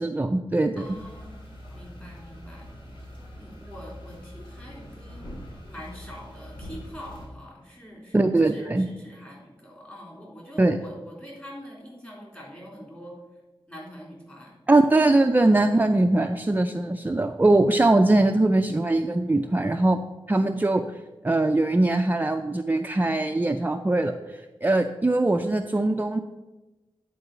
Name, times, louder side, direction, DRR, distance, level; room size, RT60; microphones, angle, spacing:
voice 1, 0.0-0.8 8.1-8.9 10.6-10.8 14.7-20.0 20.3-26.2, right 2 dB, 20° right, 5 dB, 0.4 m, -21 dB
sound 1, 0.8-7.3, equal, 55° left, 2.4 m, -43 dB
voice 2, 0.8-1.4 1.7-2.7 3.4-5.3 5.7-13.2 13.7-14.6, equal, 20° left, -3 dB, 3.6 m, -44 dB
9.7 x 4.7 x 6.8 m, 1.1 s
wide cardioid pair, 100°, 10 cm